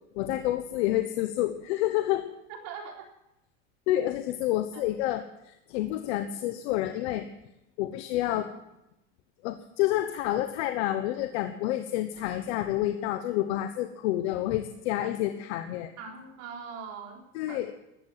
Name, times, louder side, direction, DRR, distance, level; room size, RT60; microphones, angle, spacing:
voice 1, 0.1-2.2 3.9-7.3 7.8-8.5 9.4-15.9 17.3-17.7, left 14 dB, 85° left, 9 dB, 1.1 m, -29 dB
voice 2, 2.5-3.1 4.7-4.8 16.0-17.6, right 6 dB, 60° right, 1 dB, 4.2 m, -41 dB
14.5 x 12.5 x 7.5 m, 0.88 s
cardioid pair, 155°, 32 cm